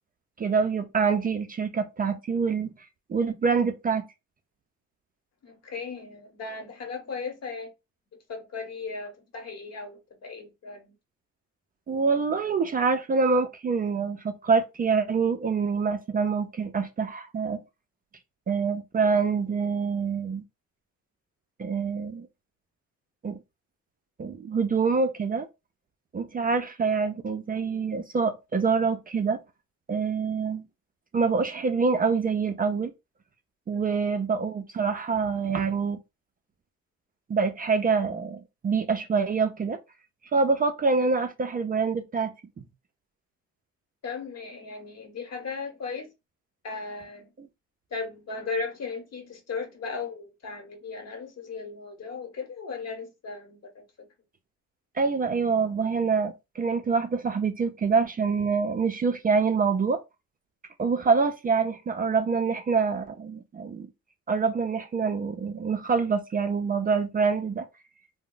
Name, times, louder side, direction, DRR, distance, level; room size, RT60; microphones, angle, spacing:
voice 1, 0.4-2.7 3.1-4.0 11.9-17.6 18.5-20.4 21.6-22.3 23.2-23.4 24.2-25.5 26.1-29.4 29.9-30.6 31.1-32.9 33.7-36.0 37.3-39.8 40.3-42.7 55.0-60.0 60.8-63.9 64.3-67.6, right 5 dB, 30° right, 0.3 m, -26 dB
voice 2, 5.4-7.7 8.1-10.9 33.7-34.0 44.0-46.1 46.6-47.3 47.9-54.1, left 4 dB, 55° left, 1.0 m, -37 dB
2.3 x 2.0 x 3.7 m
cardioid pair, 90°, 30 cm